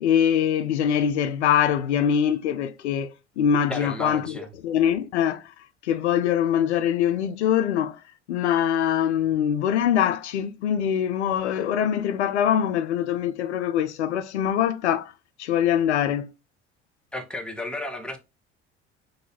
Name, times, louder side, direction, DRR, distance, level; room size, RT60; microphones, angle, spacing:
voice 1, 0.0-4.3 4.6-5.5 5.8-8.0 8.3-15.1 15.4-16.3, left 9 dB, 75° left, 0.5 m, -23 dB
voice 2, 3.7-4.5 17.1-18.2, left 1 dB, 5° left, 1.1 m, -33 dB
6.4 x 2.7 x 2.8 m
figure-of-eight pair, 60°, 34 cm